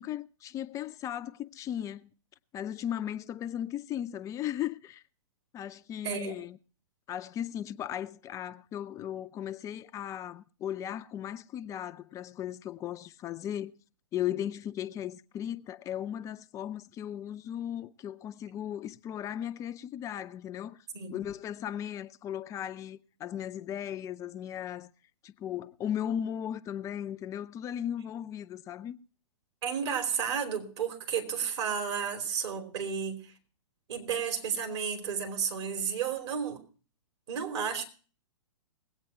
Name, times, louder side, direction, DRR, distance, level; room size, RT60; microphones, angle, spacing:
voice 1, 0.0-2.1 2.5-5.0 5.5-6.6 7.1-13.7 14.1-20.8 21.1-24.9 25.2-29.0, left 10 dB, 20° left, 0.5 m, -36 dB
voice 2, 6.0-6.4 20.9-21.2 29.6-33.3 33.9-36.6 37.3-37.8, right 7 dB, 55° right, 3.2 m, -32 dB
20.0 x 8.8 x 4.3 m
figure-of-eight pair, 120°, 17 cm